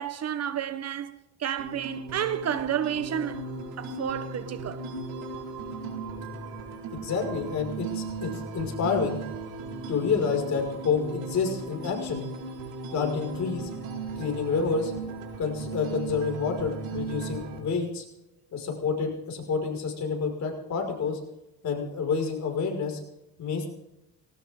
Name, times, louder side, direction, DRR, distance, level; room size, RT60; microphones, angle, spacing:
voice 1, 0.0-3.4 3.8-4.8, right 9 dB, 45° right, 1.1 m, -31 dB
sound 1, 1.6-17.6, right 3 dB, 75° right, 4.2 m, -37 dB
voice 2, 7.0-9.2 9.9-12.2 12.9-13.7 14.2-14.9 15.4-18.0 18.5-21.2 21.6-23.0 23.4-23.7, left 5 dB, 50° left, 5.5 m, -28 dB
19.5 x 18.5 x 3.7 m
cardioid pair, 105°, 35 cm